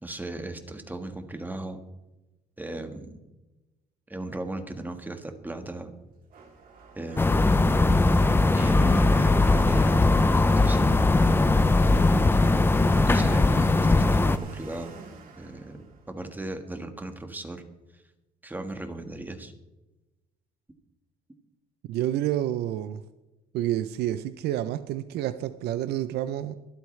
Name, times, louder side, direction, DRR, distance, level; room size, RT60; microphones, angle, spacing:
voice 1, 0.0-1.8 2.6-3.2 4.1-5.9 6.9-7.5 8.5-10.9 13.1-14.9 15.4-15.8 16.1-17.6 17.9-18.0 18.4-19.5, right 2 dB, 10° right, 7 dB, 1.5 m, -36 dB
Domestic sounds home sounds, 6.0-16.7, right 4 dB, 55° right, 3.1 m, -46 dB
sound 1, 7.2-14.4, left 2 dB, 15° left, 0.5 m, -20 dB
voice 2, 21.9-23.0 23.5-26.5, right 12 dB, 75° right, 12 dB, 0.6 m, -29 dB
23.5 x 8.3 x 3.3 m, 1.0 s
cardioid pair, 110°, 17 cm